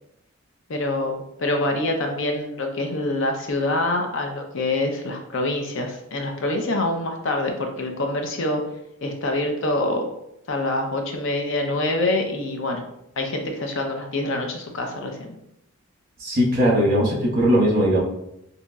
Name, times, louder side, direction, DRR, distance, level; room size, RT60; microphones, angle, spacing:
voice 1, 0.7-8.6 9.0-10.1 10.5-12.8 13.2-15.3, left 2 dB, 60° left, 3 dB, 0.5 m, -25 dB
voice 2, 16.2-18.0, equal, 45° right, -5 dB, 1.1 m, -19 dB
4.0 x 2.7 x 2.3 m, 0.79 s
head